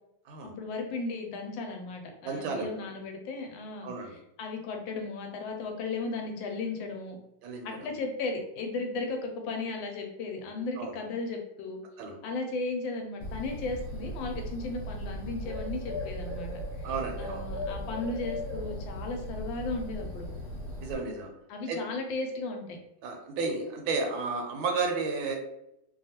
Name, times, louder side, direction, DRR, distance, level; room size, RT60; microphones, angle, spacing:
voice 1, 0.4-3.9 4.4-7.2 7.6-11.8 12.2-16.5 16.8-16.9 17.2-20.3 21.5-22.8, left 3 dB, 80° left, 3 dB, 1.3 m, -35 dB
voice 2, 2.2-2.7 3.8-4.1 7.4-7.9 10.8-11.0 12.0-12.2 16.8-17.4 20.8-21.3 21.7-21.8 23.0-25.4, right 4 dB, 85° right, 2 dB, 1.4 m, -32 dB
Bird, 13.2-20.9, equal, 35° left, 1.1 m, -37 dB
3.2 x 2.3 x 2.8 m, 0.82 s
omnidirectional pair, 2.1 m